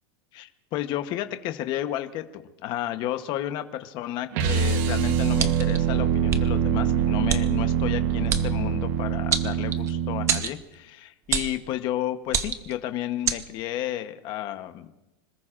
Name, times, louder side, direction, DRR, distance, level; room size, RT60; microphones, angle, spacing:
voice 1, 0.3-14.9, left 13 dB, 35° left, 8 dB, 1.0 m, -32 dB
sound 1, 4.3-10.4, right 8 dB, 50° right, 1.1 m, -24 dB
sound 2, 5.4-5.8 6.3-6.4 7.3-7.4 8.3-8.5 9.3-9.9 10.3-10.6 11.3-11.6 12.3-12.7 13.3-13.4, right 7 dB, 20° right, 0.8 m, -26 dB
26.0 x 19.0 x 2.5 m, 0.99 s
supercardioid pair, 165°, 13 cm